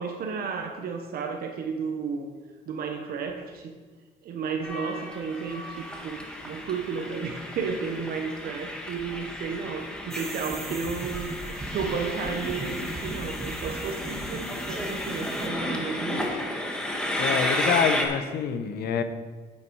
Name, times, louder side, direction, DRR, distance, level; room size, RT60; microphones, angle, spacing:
voice 1, 0.0-2.3 2.7-3.8 4.2-11.3 11.7-16.3, right 5 dB, 65° right, 4 dB, 1.0 m, -33 dB
Train, 4.6-18.1, left 1 dB, 5° left, 1.7 m, -33 dB
sound 1, 10.1-15.5, right 1 dB, 15° right, 1.2 m, -38 dB
voice 2, 17.2-19.0, left 7 dB, 70° left, 9 dB, 0.9 m, -26 dB
8.5 x 8.3 x 4.8 m, 1.3 s
cardioid pair, 110°, 17 cm